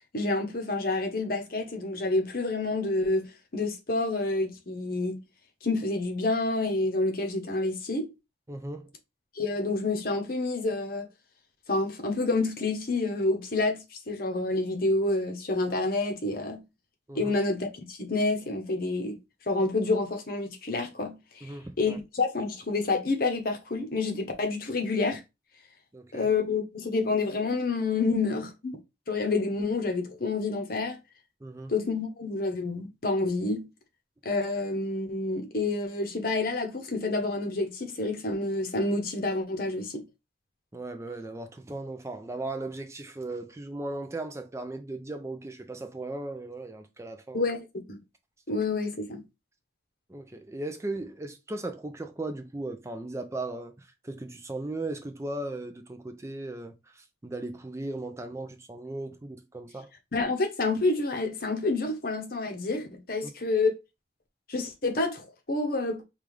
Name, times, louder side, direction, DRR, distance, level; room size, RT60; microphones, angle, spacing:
voice 1, 0.1-3.3 3.5-5.2 5.6-8.1 9.3-11.1 11.7-16.6 17.1-19.2 19.5-25.2 26.1-28.8 29.1-31.0 31.7-33.7 34.2-40.0 47.3-48.0 48.5-49.2 60.1-63.7 64.5-66.0, left 3 dB, 50° left, 0.9 m, -28 dB
voice 2, 8.5-8.9 17.1-17.4 21.4-22.0 25.9-26.3 31.4-31.7 40.7-47.5 50.1-59.9 63.2-63.3, right 2 dB, 15° right, 0.4 m, -37 dB
5.2 x 2.4 x 3.2 m
head